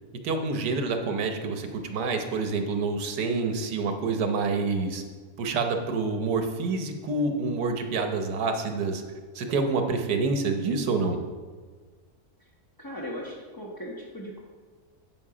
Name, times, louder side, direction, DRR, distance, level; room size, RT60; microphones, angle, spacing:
voice 1, 0.2-5.0 5.4-9.0 9.3-11.2, right 4 dB, 90° right, 5 dB, 1.5 m, -27 dB
voice 2, 12.8-14.4, equal, 20° left, -4 dB, 0.7 m, -38 dB
8.1 x 7.6 x 4.9 m, 1.5 s
omnidirectional pair, 1.7 m